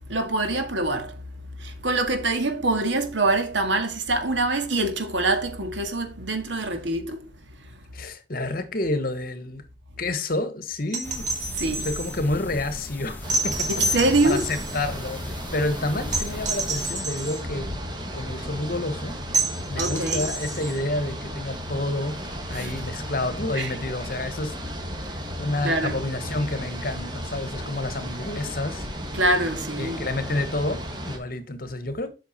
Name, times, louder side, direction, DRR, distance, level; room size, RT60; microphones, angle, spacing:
voice 1, 0.1-1.2 1.6-7.8 11.6-11.9 13.7-14.5 19.8-20.3 22.5-22.7 23.5-23.8 25.6-26.0 29.1-30.1, right 2 dB, 80° right, 1.9 m, -25 dB
voice 2, 7.9-9.6 10.0-11.3 11.8-13.7 14.2-15.2 15.5-17.8 18.1-19.2 19.7-22.2 22.5-24.6 25.1-28.9 29.8-32.1, left 2 dB, 50° left, 1.3 m, -29 dB
sound 1, 10.9-12.2 13.3-14.8 16.1-17.4 19.3-20.8 22.6-22.7, right 2 dB, 40° right, 2.4 m, -28 dB
sound 2, 11.0-16.9, left 1 dB, 10° left, 1.1 m, -38 dB
sound 3, 13.2-31.2, equal, 25° right, 1.8 m, -34 dB
8.0 x 6.1 x 4.3 m
head